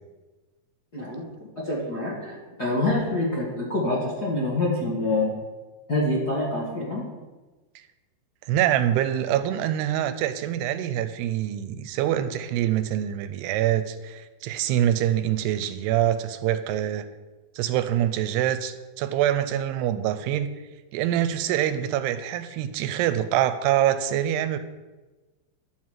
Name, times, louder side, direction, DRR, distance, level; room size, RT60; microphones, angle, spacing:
voice 1, 0.9-1.3 1.6-5.3 5.9-7.0, left 2 dB, 45° left, -6 dB, 1.2 m, -26 dB
voice 2, 8.5-17.1 17.6-20.5 20.9-24.6, right 11 dB, 90° right, 11 dB, 2.7 m, -25 dB
11.0 x 4.7 x 7.4 m, 1.2 s
omnidirectional pair, 4.7 m